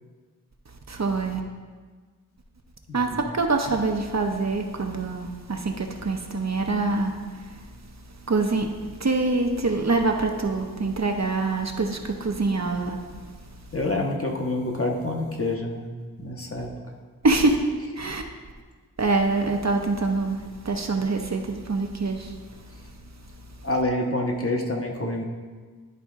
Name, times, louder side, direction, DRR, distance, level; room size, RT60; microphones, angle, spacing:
voice 1, 0.9-1.4 2.9-7.6 8.3-13.0 17.2-17.6 18.0-18.2 19.0-22.3, right 3 dB, 50° right, 3 dB, 0.7 m, -25 dB
voice 2, 13.7-15.8 16.2-16.7 23.6-25.2, left 2 dB, 40° left, 0 dB, 1.0 m, -27 dB
11.0 x 4.2 x 3.6 m, 1.5 s
wide cardioid pair, 55°, 35 cm